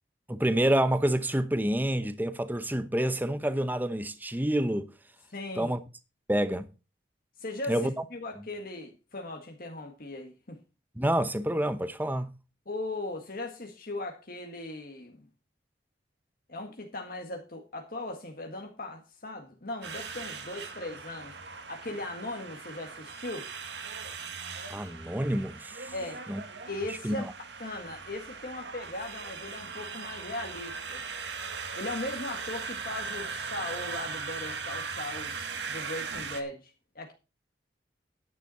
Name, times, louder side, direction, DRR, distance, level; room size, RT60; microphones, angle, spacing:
voice 1, 0.3-4.9 5.6-5.8 6.3-6.7 7.7-7.9 11.0-12.3 24.7-25.9 26.3-26.4 27.0-27.2, right 1 dB, 10° right, 0.8 m, -28 dB
voice 2, 5.3-5.7 7.4-10.6 12.7-15.3 16.5-21.4 21.7-23.5 25.9-26.2 26.7-27.3 27.6-31.0 31.8-35.4 35.7-37.1, left 2 dB, 50° left, 1.8 m, -38 dB
sound 1, 19.8-36.4, right 5 dB, 75° right, 1.8 m, -39 dB
10.5 x 9.0 x 4.2 m
head